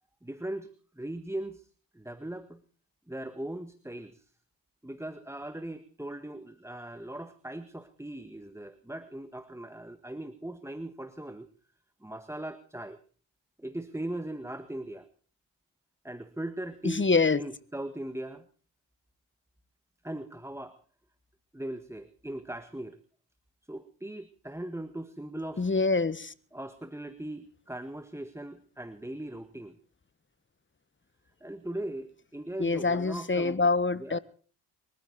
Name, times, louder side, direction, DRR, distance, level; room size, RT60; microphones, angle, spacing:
voice 1, 0.2-0.7 0.9-1.7 1.9-2.6 3.1-4.3 4.8-11.5 12.0-13.0 13.6-15.1 16.0-17.1 17.3-18.5 20.0-20.8 21.5-23.0 23.7-25.7 26.5-29.8 31.4-33.6 34.0-34.2, right 1 dB, 5° right, 1.7 m, -39 dB
voice 2, 16.8-17.4 25.6-26.3 32.6-34.2, left 3 dB, 25° left, 1.5 m, -25 dB
23.0 x 14.5 x 4.3 m
supercardioid pair, 55°, 45 cm